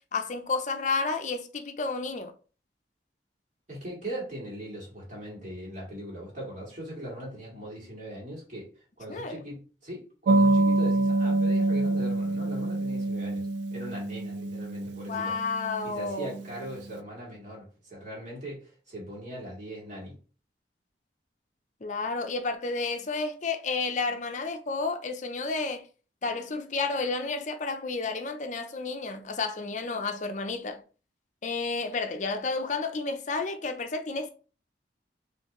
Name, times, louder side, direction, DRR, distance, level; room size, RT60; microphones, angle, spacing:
voice 1, 0.1-2.3 9.1-9.4 15.1-16.4 21.8-25.8 26.2-30.8 31.4-34.3, left 4 dB, 45° left, 0.6 m, -31 dB
voice 2, 3.7-8.7 9.0-13.4 13.7-15.3 15.8-20.1, right 1 dB, 45° right, 2.3 m, -40 dB
sound 1, 10.3-16.5, right 2 dB, 75° right, 0.4 m, -26 dB
4.4 x 3.2 x 3.0 m
head